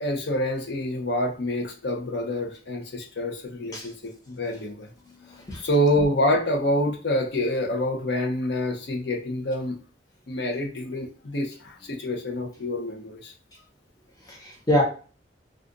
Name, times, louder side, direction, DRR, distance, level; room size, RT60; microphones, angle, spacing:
voice 1, 0.0-4.9 5.5-9.8 10.3-13.3, left 1 dB, 65° left, 2 dB, 0.7 m, -27 dB
voice 2, 5.1-5.6 14.2-14.8, left 1 dB, 20° left, -1 dB, 0.9 m, -26 dB
2.4 x 2.4 x 3.8 m, 0.38 s
head